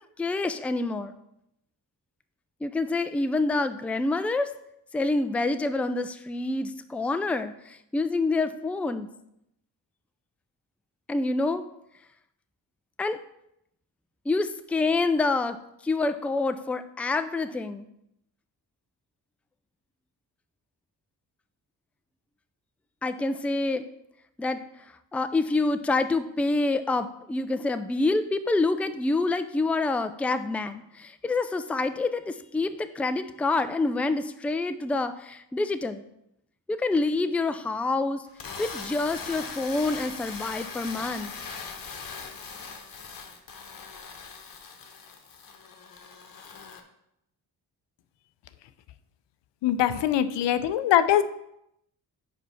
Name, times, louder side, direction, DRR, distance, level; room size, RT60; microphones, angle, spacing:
voice 1, 0.2-1.1 2.6-4.5 4.9-9.1 11.1-11.6 13.0-13.2 14.3-15.6 15.8-17.9 23.0-23.8 24.4-24.6 25.1-36.0 36.7-38.2 38.6-41.3, left 3 dB, 5° left, 10 dB, 0.3 m, -27 dB
sound 1, 38.3-46.8, left 5 dB, 50° left, 1.0 m, -40 dB
voice 2, 49.6-51.2, left 11 dB, 85° left, 12 dB, 0.5 m, -22 dB
5.0 x 4.6 x 5.6 m, 0.79 s
cardioid pair, 70°, 42 cm